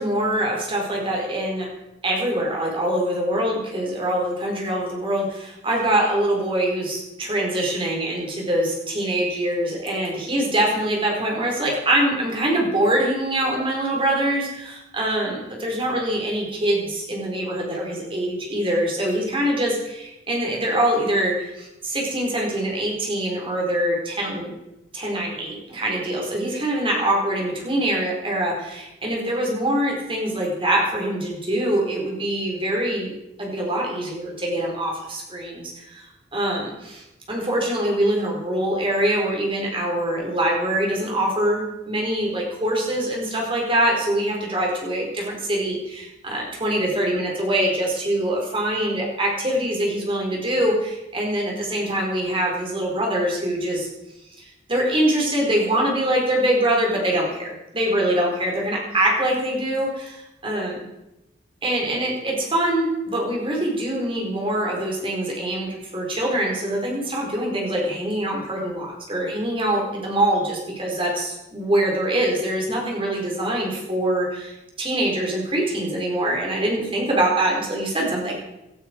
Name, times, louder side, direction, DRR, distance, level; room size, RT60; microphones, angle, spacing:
voice 1, 0.0-1.7 2.0-24.5 24.9-33.1 33.4-36.1 36.3-53.9 54.4-60.8 61.6-78.4, right 1 dB, 30° right, -1 dB, 4.4 m, -24 dB
17.5 x 12.0 x 4.6 m, 0.93 s
head